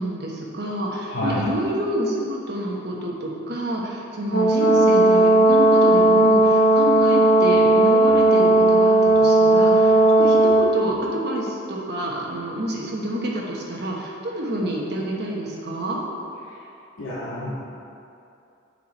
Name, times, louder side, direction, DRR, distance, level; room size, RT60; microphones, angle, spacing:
voice 1, 0.0-16.0, right 1 dB, 55° right, -2 dB, 1.2 m, -28 dB
voice 2, 1.1-1.4 17.0-17.6, left 1 dB, 85° left, -8 dB, 1.4 m, -28 dB
Brass instrument, 4.3-10.7, right 2 dB, 45° left, 1.0 m, -16 dB
7.4 x 5.8 x 4.3 m, 2.6 s
head